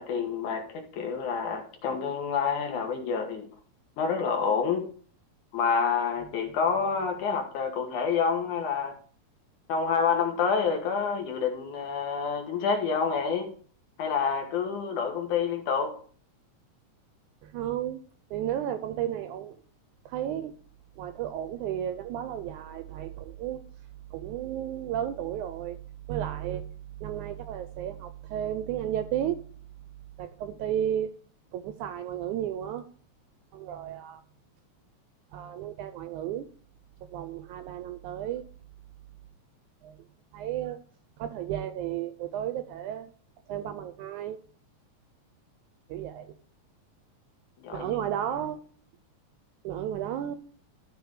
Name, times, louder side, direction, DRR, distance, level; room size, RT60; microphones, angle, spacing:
voice 1, 0.0-3.4 4.0-4.9 5.5-9.0 9.7-13.5 14.0-16.0 47.6-47.9, left 6 dB, 65° left, 4 dB, 2.8 m, -28 dB
voice 2, 17.4-18.0 18.3-19.6 20.0-20.6 21.0-23.6 24.1-25.8 26.1-26.6 27.0-29.4 30.2-31.1 31.5-32.8 33.5-34.2 35.3-36.5 37.1-38.4 39.8-40.0 40.3-40.8 41.2-43.1 43.5-44.4 45.9-46.3 47.7-48.6 49.6-50.4, right 10 dB, 80° right, 10 dB, 1.9 m, -33 dB
13.0 x 4.8 x 4.8 m, 0.43 s
omnidirectional pair, 3.9 m